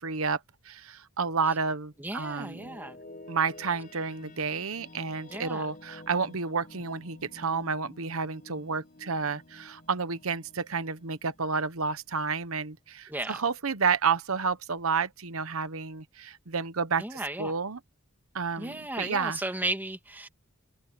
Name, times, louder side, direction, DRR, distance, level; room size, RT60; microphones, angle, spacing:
voice 1, 0.0-2.8 3.3-17.8 18.3-19.4, right 5 dB, 85° right, 1.0 m, -30 dB
sound 1, 1.9-12.9, left 1 dB, 40° left, 5.9 m, -51 dB
voice 2, 2.0-3.0 5.3-5.6 13.1-13.4 17.0-17.5 18.6-20.3, right 1 dB, 10° right, 1.9 m, -35 dB
head